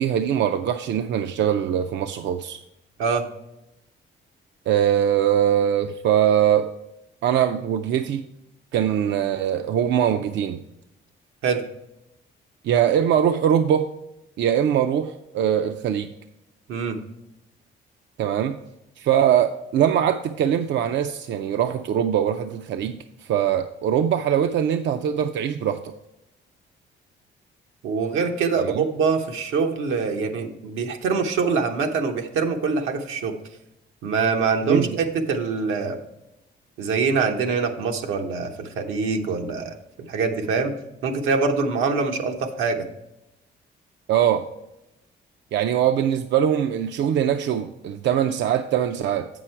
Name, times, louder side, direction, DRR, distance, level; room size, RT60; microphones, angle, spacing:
voice 1, 0.0-2.6 4.7-6.7 7.2-8.3 8.7-10.6 12.6-13.9 14.4-16.1 18.2-18.6 19.0-25.9 28.6-28.8 34.7-35.0 44.1-44.5 45.5-49.3, right 9 dB, 65° right, 8 dB, 0.4 m, -22 dB
voice 2, 27.8-33.4 34.0-36.0 36.8-39.8 40.1-40.7 41.0-42.9, right 5 dB, 85° right, 4 dB, 0.9 m, -24 dB
7.6 x 6.1 x 4.4 m, 0.90 s
cardioid pair, 90°, 20 cm